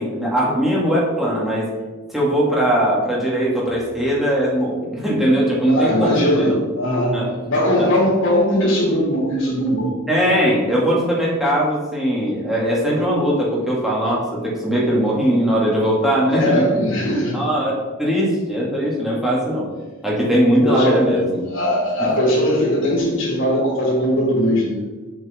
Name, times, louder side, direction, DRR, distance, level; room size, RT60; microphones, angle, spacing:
voice 1, 0.0-1.7 2.1-6.6 7.1-7.3 7.8-7.9 10.1-16.6 17.3-19.7 20.0-21.4 22.0-22.1, equal, ahead, -6 dB, 2.5 m, -20 dB
voice 2, 5.6-10.0 16.3-17.4 20.6-21.2 21.5-24.8, equal, 65° left, -6 dB, 2.7 m, -19 dB
7.9 x 7.4 x 3.7 m, 1.2 s
head